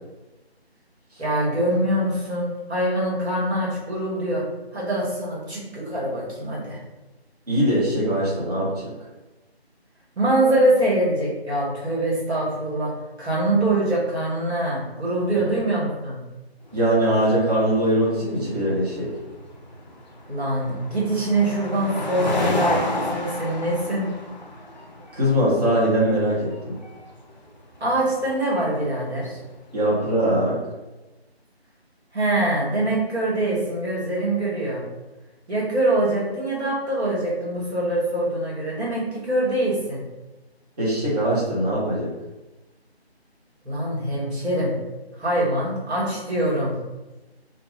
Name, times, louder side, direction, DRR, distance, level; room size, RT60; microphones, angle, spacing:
voice 1, 1.2-4.4 4.7-6.8 10.2-16.2 20.3-24.1 27.8-29.4 32.1-34.8 35.5-40.0 43.6-44.7 45.2-46.7, right 1 dB, 80° right, -6 dB, 1.4 m, -24 dB
voice 2, 7.5-8.9 15.3-15.4 16.7-19.1 25.1-26.7 29.7-30.6 40.8-42.1, right 1 dB, 40° right, -8 dB, 1.0 m, -21 dB
sound 1, 16.7-30.2, left 1 dB, 45° left, 0.4 m, -32 dB
2.5 x 2.3 x 3.3 m, 1.1 s
figure-of-eight pair, 165°, 32 cm